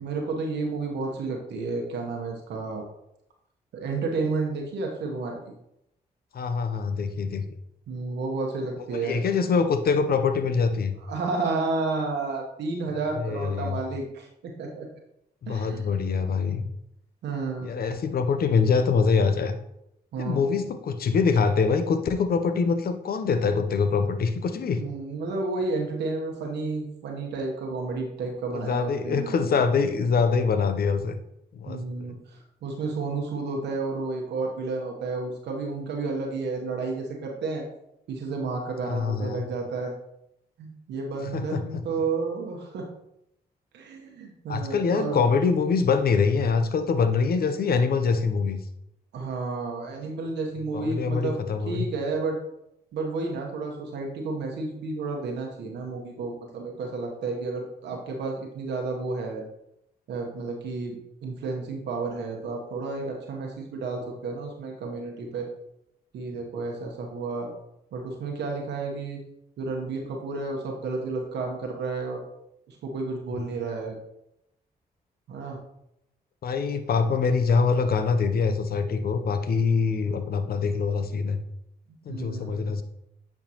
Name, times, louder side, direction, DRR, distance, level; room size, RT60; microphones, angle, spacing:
voice 1, 0.0-2.9 3.7-5.5 7.9-9.2 11.0-14.9 15.5-15.8 17.2-17.7 20.1-20.4 24.7-29.6 31.7-37.6 38.1-39.9 40.6-42.9 43.7-45.2 49.1-51.4 51.7-52.4 52.9-59.4 60.1-65.5 66.1-67.5 67.9-69.2 69.6-72.2 72.7-74.0 75.3-75.6 82.1-82.7, right 3 dB, 80° right, 1 dB, 1.0 m, -31 dB
voice 2, 6.3-7.5 8.9-11.0 13.2-13.8 15.4-16.7 17.6-19.5 20.2-24.8 28.5-31.2 31.5-32.1 38.8-39.4 41.3-41.8 44.5-48.6 50.7-51.8 76.4-81.4 82.1-82.8, left 5 dB, 60° left, 9 dB, 0.7 m, -24 dB
8.5 x 4.4 x 2.9 m, 0.80 s
supercardioid pair, 50°, 18 cm